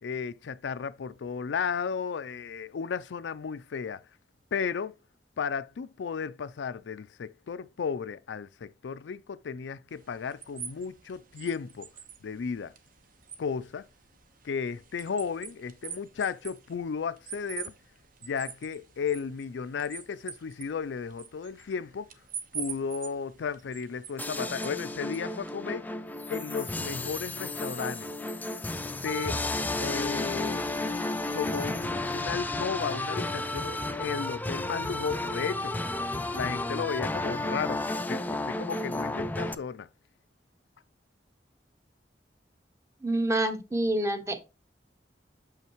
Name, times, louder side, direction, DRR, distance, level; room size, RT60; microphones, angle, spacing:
voice 1, 0.0-4.0 4.5-4.9 5.4-11.9 12.2-12.7 13.4-13.8 14.4-17.7 18.2-22.1 22.5-25.9 26.3-28.1 29.0-29.4 29.8-30.7 31.3-35.7 36.3-37.8 38.1-39.9, left 6 dB, 90° left, 0.4 m, -34 dB
sound 1, 9.9-25.5, right 7 dB, 55° right, 1.0 m, -45 dB
sound 2, 24.2-39.5, left 2 dB, 10° left, 0.4 m, -32 dB
voice 2, 43.0-44.4, right 1 dB, 15° right, 0.8 m, -27 dB
7.1 x 5.7 x 3.0 m
head